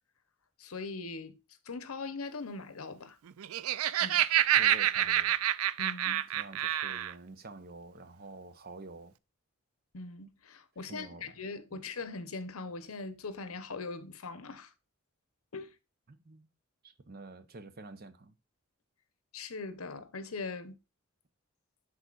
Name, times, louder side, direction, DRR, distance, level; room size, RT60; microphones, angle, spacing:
voice 1, 0.6-1.4 1.7-3.2 4.0-4.2 5.8-6.3 9.9-14.7 15.5-15.7 19.3-20.8, left 3 dB, 90° left, 0.9 m, -41 dB
Laughter, 3.3-7.1, right 12 dB, 85° right, 0.4 m, -28 dB
voice 2, 4.6-5.4 6.3-9.1 10.9-11.3 11.7-11.8 16.1-16.5 16.8-18.3, right 3 dB, 45° right, 0.8 m, -48 dB
10.5 x 4.0 x 2.4 m
head